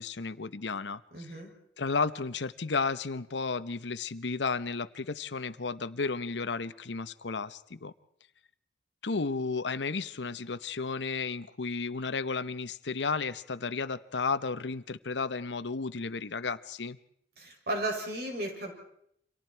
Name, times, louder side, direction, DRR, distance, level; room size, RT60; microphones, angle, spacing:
voice 1, 0.0-1.0 1.8-7.9 9.0-17.0, left 4 dB, 75° left, 14 dB, 0.9 m, -33 dB
voice 2, 1.1-1.5 17.4-18.7, right 1 dB, 60° right, 1 dB, 6.6 m, -34 dB
29.5 x 25.5 x 4.6 m, 0.71 s
head